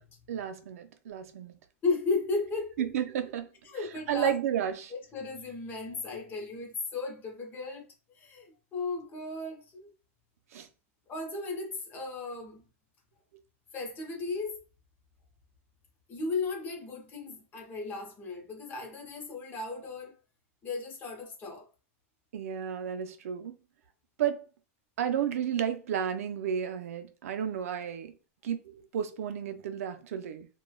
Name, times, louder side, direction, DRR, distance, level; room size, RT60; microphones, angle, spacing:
voice 1, 0.3-1.5 2.8-3.5 4.1-4.9 10.5-10.7 22.3-23.5 24.2-24.5 25.0-28.1 28.4-30.5, right 9 dB, 90° right, 0.5 m, -32 dB
voice 2, 1.8-2.8 3.6-4.3 4.9-7.9 8.1-9.9 11.1-12.6 13.7-14.6 16.1-20.2 20.6-21.7, left 3 dB, 25° left, 0.8 m, -35 dB
3.1 x 2.2 x 2.3 m
supercardioid pair, 140°, 8 cm